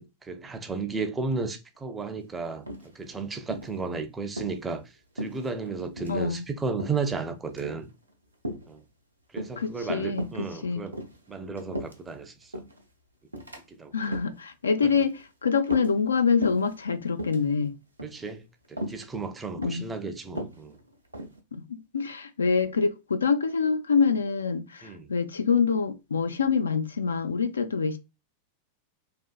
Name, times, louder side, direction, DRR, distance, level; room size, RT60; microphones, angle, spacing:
voice 1, 0.0-2.7 2.9-4.8 5.2-7.9 8.7-8.8 9.3-11.0 11.3-12.5 13.7-13.9 18.0-20.8 24.8-25.1, right 4 dB, 15° right, 0.5 m, -33 dB
sound 1, 2.7-3.1 3.5-3.8 4.3-4.6 5.2-5.7 6.0-6.2 6.8-7.1 7.5-7.8 8.4-8.7 9.4-9.7 10.1-10.4 10.9-12.1 12.5-12.8 13.3-13.6 14.0-14.4 14.9-15.2 15.6-16.1 16.4-16.7 17.1-17.4 18.0-18.3 18.8-19.0 19.6-19.9 20.3-21.4, equal, 85° right, 0.6 m, -36 dB
voice 2, 6.1-6.5 9.6-10.8 13.9-17.7 19.6-19.8 21.5-28.0, left 5 dB, 75° left, 0.3 m, -26 dB
3.4 x 2.4 x 2.2 m
figure-of-eight pair, 90°, 0 cm